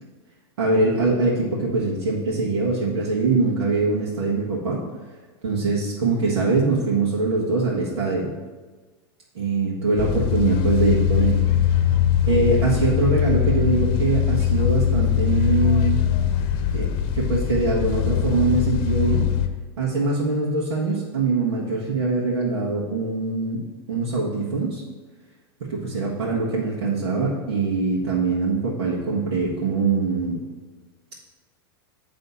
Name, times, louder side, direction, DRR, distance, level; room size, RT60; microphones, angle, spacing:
voice 1, 0.6-4.8 5.4-8.3 9.3-11.4 11.7-11.8 12.3-16.0 16.7-19.3 19.8-23.6 23.9-24.8 25.7-30.4, right 3 dB, 85° right, -6 dB, 1.7 m, -23 dB
sound 1, 10.0-19.5, left 10 dB, 45° left, 0.8 m, -21 dB
9.3 x 3.4 x 6.9 m, 1.3 s
hypercardioid pair, 130°, 14 cm